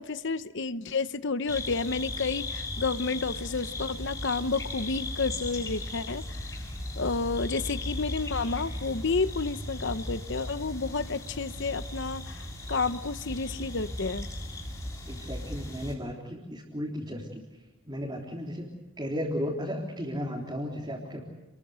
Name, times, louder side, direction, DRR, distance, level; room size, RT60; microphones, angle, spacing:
voice 1, 0.0-6.5 7.0-14.3, left 4 dB, 55° left, 13 dB, 0.9 m, -31 dB
sound 1, 1.5-15.9, left 1 dB, 15° left, 6.6 m, -37 dB
voice 2, 15.1-17.4 17.9-18.7 19.0-21.2, equal, 20° right, -3 dB, 3.7 m, -34 dB
29.0 x 22.5 x 8.1 m, 1.0 s
head